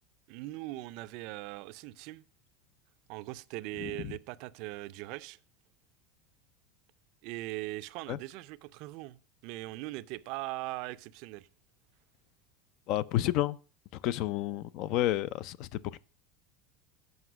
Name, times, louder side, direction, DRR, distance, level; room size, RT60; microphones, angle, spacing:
voice 1, 0.3-2.2 3.1-5.4 7.2-11.5, right 19 dB, 55° right, 0.4 m, -40 dB
voice 2, 12.9-13.6 14.0-16.0, left 14 dB, 50° left, 0.4 m, -30 dB
7.9 x 5.4 x 6.0 m
supercardioid pair, 150°, 0 cm